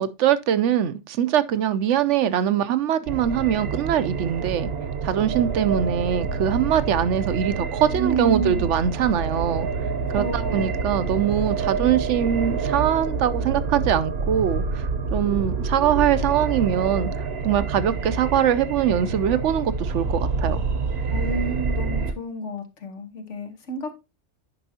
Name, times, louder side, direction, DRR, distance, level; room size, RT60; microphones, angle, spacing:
voice 1, 0.0-4.7 5.0-9.7 10.1-14.9 15.1-20.6, right 9 dB, 90° right, 1.0 m, -22 dB
sound 1, 3.1-22.1, right 4 dB, 65° right, 1.0 m, -27 dB
voice 2, 8.0-8.7 10.1-10.7 21.1-23.9, right 3 dB, 90° left, 1.6 m, -30 dB
9.5 x 5.4 x 2.8 m
omnidirectional pair, 1.2 m